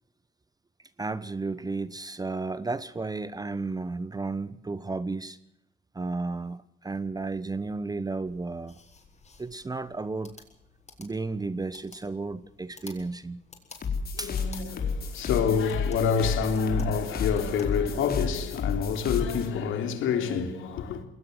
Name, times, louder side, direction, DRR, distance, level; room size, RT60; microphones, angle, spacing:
voice 1, 1.0-5.4 5.9-8.8 9.4-10.3 11.0-13.4 14.2-14.4, right 3 dB, 20° right, 0.9 m, -33 dB
sound 1, 8.2-18.6, left 4 dB, 35° left, 7.2 m, -53 dB
sound 2, 13.7-19.5, left 5 dB, 50° left, 4.6 m, -31 dB
voice 2, 14.1-21.1, left 6 dB, 85° left, 3.6 m, -27 dB
21.0 x 19.0 x 8.0 m
cardioid pair, 90°, 20 cm